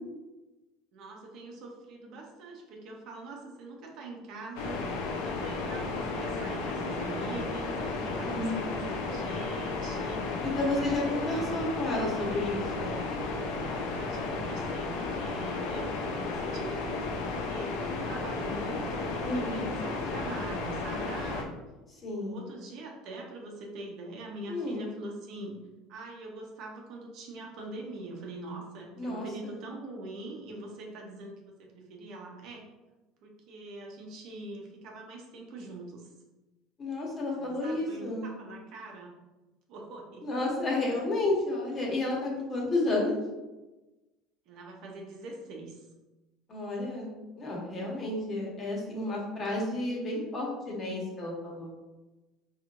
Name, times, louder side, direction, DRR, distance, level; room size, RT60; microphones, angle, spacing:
voice 1, 0.9-11.5 13.9-21.5 22.0-25.6 25.9-32.7 33.2-36.1 37.4-39.2 39.7-40.3 44.5-45.9, right 2 dB, 60° right, 0 dB, 0.9 m, -43 dB
sound 1, 4.6-21.4, left 3 dB, 85° left, 0.7 m, -33 dB
voice 2, 8.2-8.8 10.4-13.0 19.2-19.7 22.0-22.4 24.5-24.9 29.0-29.6 36.8-38.3 40.2-43.2 46.5-47.1 47.4-51.7, left 2 dB, 30° left, -2 dB, 1.3 m, -31 dB
4.6 x 3.2 x 2.5 m, 1.1 s
cardioid pair, 135°, 0 cm